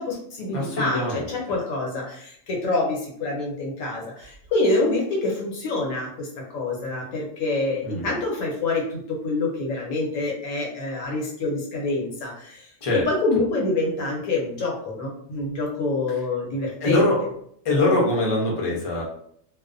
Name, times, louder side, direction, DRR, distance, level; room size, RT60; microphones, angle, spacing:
voice 1, 0.0-6.3 6.5-12.7 13.1-17.0, left 2 dB, 80° left, -3 dB, 1.2 m, -26 dB
voice 2, 0.5-1.3 7.8-8.2 12.8-13.0 16.8-17.2 17.6-19.0, left 2 dB, 35° left, -3 dB, 0.5 m, -23 dB
2.5 x 2.1 x 2.5 m, 0.67 s
omnidirectional pair, 1.4 m